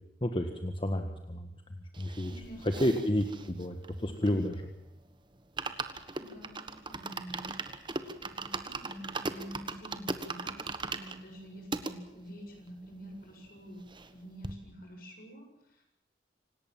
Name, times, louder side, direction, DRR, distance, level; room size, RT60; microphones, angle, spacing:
voice 1, 0.2-1.5 2.0-2.3 2.8-3.8 4.0-4.7, equal, 30° left, 6 dB, 1.6 m, -30 dB
sound 1, 1.9-4.7 5.0-5.1 5.4-11.9 12.5-12.6 12.8-12.9 13.2-14.2 14.4-14.5, right 3 dB, 25° right, 1.5 m, -39 dB
voice 2, 2.3-2.9 6.2-7.6 8.2-13.8 14.1-15.5 15.7-15.8, equal, 55° left, 3 dB, 7.5 m, -47 dB
26.5 x 18.5 x 7.5 m, 0.82 s
head